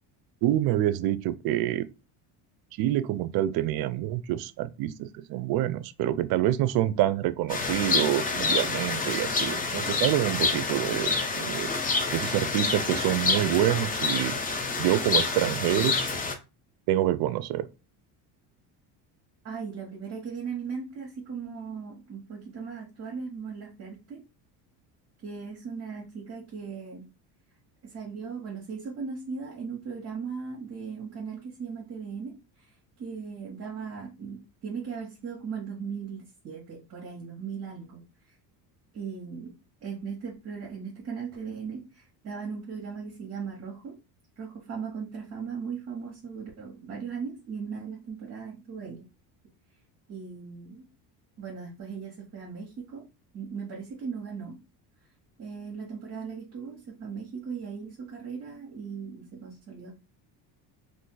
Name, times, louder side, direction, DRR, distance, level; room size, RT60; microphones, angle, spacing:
voice 1, 0.4-1.9 2.8-11.7 12.1-14.3 14.8-16.0 16.9-17.7, right 13 dB, 60° right, 0.5 m, -27 dB
sound 1, 7.5-16.3, left 4 dB, 20° left, 0.5 m, -28 dB
voice 2, 19.4-24.2 25.2-27.1 27.8-32.7 33.0-38.0 38.9-39.5 39.8-44.0 44.4-49.1 50.1-50.8 51.4-53.1 53.3-54.6 55.4-59.9, right 6 dB, 35° right, 1.1 m, -38 dB
2.6 x 2.5 x 3.8 m
cardioid pair, 115°, 43 cm